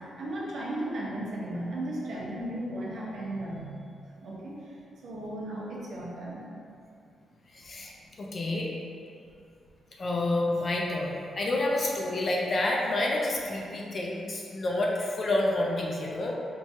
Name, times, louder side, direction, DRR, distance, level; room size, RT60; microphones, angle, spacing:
voice 1, 0.0-6.5, right 1 dB, 65° right, -5 dB, 0.7 m, -36 dB
voice 2, 7.5-7.9 8.2-8.7 10.0-16.3, left 2 dB, 35° left, -2 dB, 0.4 m, -29 dB
4.5 x 2.3 x 2.7 m, 2.5 s
wide cardioid pair, 150°, 0 cm